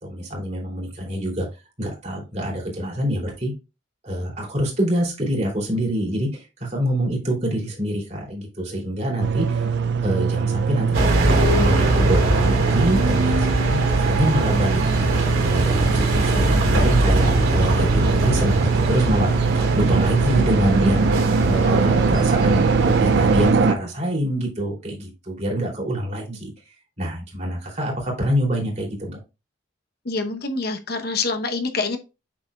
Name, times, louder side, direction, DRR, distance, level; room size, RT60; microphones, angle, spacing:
voice 1, 0.0-3.5 4.0-9.7 10.0-29.2, equal, 35° right, 3.0 m, -26 dB
sound 1, 9.2-23.7, right 5 dB, 60° right, 0.4 m, -21 dB
sound 2, 10.9-23.5, right 1 dB, 80° right, 3.1 m, -22 dB
voice 2, 30.0-32.0, left 3 dB, 50° left, 0.9 m, -26 dB
7.7 x 6.0 x 2.3 m
head